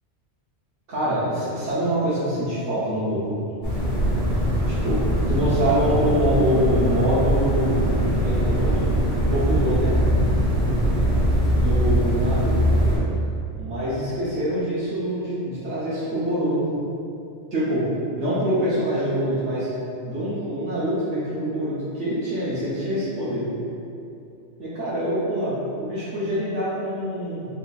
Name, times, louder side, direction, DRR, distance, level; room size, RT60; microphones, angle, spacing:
voice 1, 0.9-3.4 4.7-5.0 5.3-8.9 9.3-10.0 11.6-12.5 13.6-16.8 17.5-17.8 18.1-19.7 20.0-23.5 24.6-25.5 25.8-27.5, equal, 85° right, -11 dB, 1.2 m, -25 dB
sound 1, 3.6-13.0, equal, 60° left, 1.9 m, -21 dB
4.4 x 4.0 x 2.3 m, 2.7 s
omnidirectional pair, 1.2 m